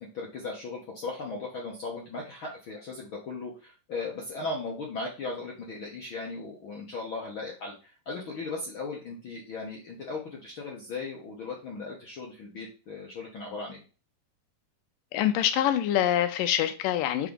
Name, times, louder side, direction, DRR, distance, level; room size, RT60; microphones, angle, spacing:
voice 1, 0.1-13.8, left 3 dB, 60° left, 1.3 m, -37 dB
voice 2, 15.1-17.3, left 11 dB, 85° left, 2.3 m, -25 dB
5.7 x 3.7 x 5.2 m
omnidirectional pair, 3.8 m